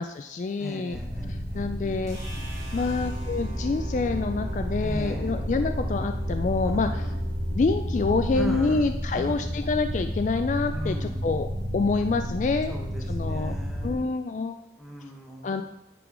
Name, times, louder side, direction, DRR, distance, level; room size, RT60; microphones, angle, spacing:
voice 1, 0.0-1.0 1.3-2.2 2.7-7.0 7.5-11.5 11.7-12.7 13.1-13.5 13.8-14.6 15.4-15.6, left 4 dB, 45° left, 8 dB, 0.3 m, -27 dB
voice 2, 0.6-1.9 2.7-3.0 4.8-5.3 6.8-7.2 8.3-8.8 9.2-9.4 10.7-11.2 12.7-14.1 14.8-15.6, equal, ahead, 0 dB, 1.0 m, -38 dB
sound 1, 0.9-13.9, equal, 65° left, 1.2 m, -31 dB
sound 2, 2.1-8.2, right 1 dB, 20° right, 2.0 m, -37 dB
9.9 x 3.8 x 4.9 m, 0.90 s
head